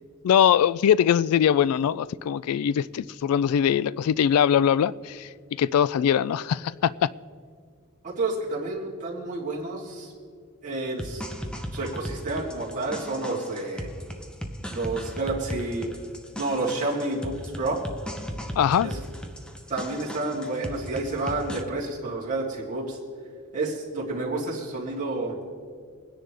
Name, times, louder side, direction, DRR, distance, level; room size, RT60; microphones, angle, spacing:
voice 1, 0.2-5.3 5.6-7.1 18.6-18.9, left 9 dB, 75° left, 0.3 m, -22 dB
voice 2, 8.0-10.1 10.6-11.2 11.7-13.9 14.7-15.9 16.3-17.8 18.8-19.0 19.7-23.0 23.5-25.4, right 2 dB, 35° right, 2.9 m, -30 dB
sound 1, 11.0-21.6, equal, 5° left, 0.7 m, -37 dB
23.5 x 10.0 x 3.4 m
head